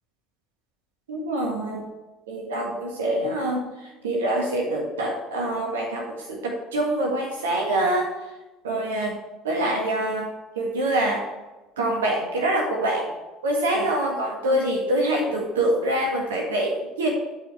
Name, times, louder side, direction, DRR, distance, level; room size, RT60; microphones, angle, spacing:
voice 1, 1.1-1.8 2.3-3.6 4.0-8.1 8.6-9.2 9.4-10.3 10.6-11.3 11.8-13.1 13.4-17.1, right 1 dB, 80° right, 0 dB, 1.6 m, -25 dB
13.0 x 5.0 x 4.5 m, 1.1 s
hypercardioid pair, 60°, 0 cm